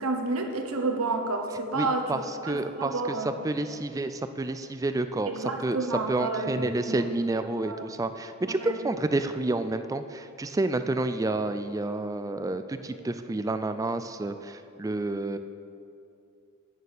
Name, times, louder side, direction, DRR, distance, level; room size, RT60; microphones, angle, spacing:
voice 1, 0.0-3.4 5.3-7.1 7.6-7.9 8.6-8.9, right 3 dB, 80° right, 4 dB, 1.1 m, -30 dB
voice 2, 1.7-3.2 3.4-5.3 5.6-5.8 6.1-15.4, right 2 dB, 15° right, 10 dB, 0.3 m, -29 dB
9.0 x 6.7 x 6.5 m, 2.7 s
head